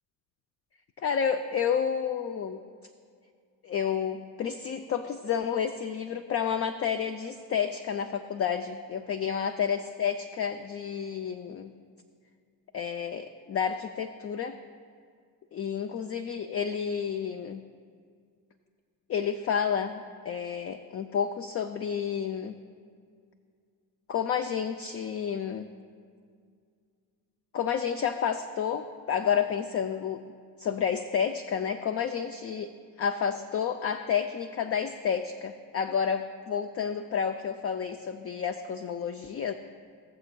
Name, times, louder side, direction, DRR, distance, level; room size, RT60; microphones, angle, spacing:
voice 1, 1.0-2.6 3.6-11.7 12.7-14.6 15.5-17.6 19.1-22.5 24.1-25.7 27.5-32.7 33.0-39.5, left 7 dB, 35° left, 8 dB, 0.4 m, -30 dB
18.0 x 6.9 x 2.2 m, 2.2 s
supercardioid pair, 80°, 42 cm